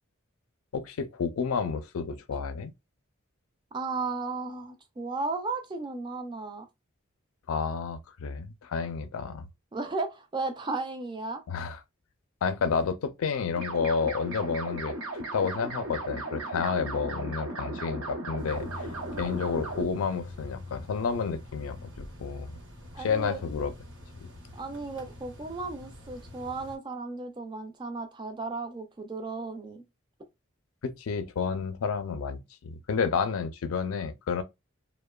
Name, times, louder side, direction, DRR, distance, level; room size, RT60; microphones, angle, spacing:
voice 1, 0.7-2.7 7.5-9.5 11.5-11.8 12.4-15.0 15.3-18.7 19.2-22.6 23.0-23.7 24.2-24.3 30.8-34.4, left 5 dB, 90° left, 0.4 m, -30 dB
voice 2, 3.7-6.7 9.7-11.4 19.1-19.4 22.9-23.4 24.5-29.8, right 3 dB, 20° right, 0.4 m, -35 dB
sound 1, 13.6-19.8, right 2 dB, 90° right, 0.8 m, -36 dB
sound 2, 18.4-26.8, left 2 dB, 55° right, 0.8 m, -45 dB
2.8 x 2.1 x 2.2 m
head